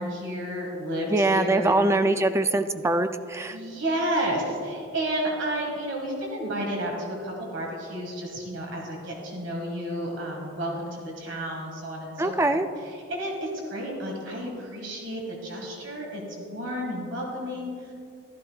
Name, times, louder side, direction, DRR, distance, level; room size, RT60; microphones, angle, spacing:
voice 1, 0.0-1.7 3.5-12.6 12.9-17.9, right 1 dB, 65° right, 0 dB, 1.7 m, -31 dB
voice 2, 1.1-3.6 12.2-12.7, right 2 dB, 15° right, 9 dB, 0.3 m, -23 dB
13.5 x 12.5 x 2.3 m, 2.4 s
head